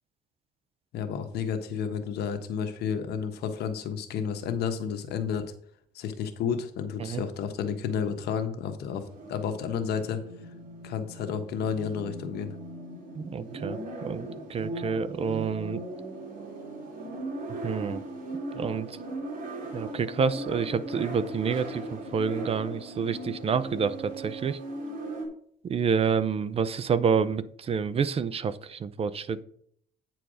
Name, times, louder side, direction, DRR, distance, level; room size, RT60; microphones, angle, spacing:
voice 1, 0.9-5.5 5.9-9.0 9.3-10.2 10.8-12.5, left 7 dB, 75° left, 7 dB, 1.3 m, -31 dB
sound 1, 8.9-25.3, right 2 dB, 55° right, 2.9 m, -38 dB
voice 2, 13.1-15.8 17.6-18.0 18.5-19.0 19.7-24.6 25.6-29.4, right 6 dB, 35° right, 15 dB, 0.6 m, -28 dB
9.0 x 4.7 x 4.9 m, 0.63 s
cardioid pair, 110°, 17 cm